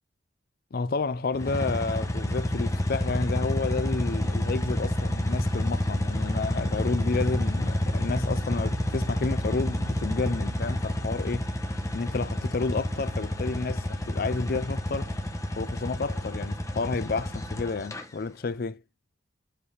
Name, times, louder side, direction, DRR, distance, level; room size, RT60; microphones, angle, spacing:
voice 1, 0.7-11.5 11.9-15.1 15.6-18.8, left 4 dB, 50° left, 0.4 m, -31 dB
sound 1, 1.3-18.0, left 1 dB, 15° left, 1.0 m, -29 dB
8.0 x 4.8 x 4.8 m
head